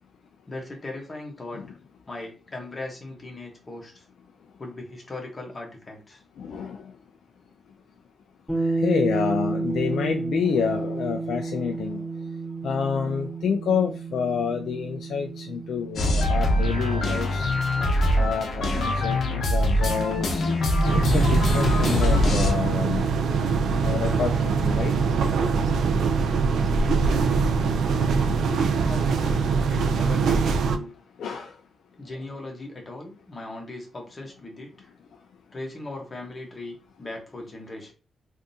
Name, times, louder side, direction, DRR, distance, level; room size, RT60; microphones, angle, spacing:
voice 1, 0.5-1.8 2.1-4.0 4.6-6.2 26.8-27.5 28.6-30.9 32.0-34.9 35.5-37.9, left 2 dB, 25° left, 0 dB, 1.0 m, -38 dB
voice 2, 6.4-6.9 8.6-12.0 12.6-17.5 18.2-20.5 20.9-23.0 23.8-24.9 28.0-28.4 31.2-31.6, left 6 dB, 80° left, 3 dB, 0.3 m, -28 dB
sound 1, 8.5-18.3, right 3 dB, 5° right, 1.7 m, -31 dB
sound 2, 16.0-22.5, left 1 dB, 65° left, 0.8 m, -23 dB
sound 3, 20.8-30.8, right 5 dB, 85° right, 0.3 m, -23 dB
3.5 x 2.5 x 2.7 m, 0.35 s
wide cardioid pair, 120°, 0 cm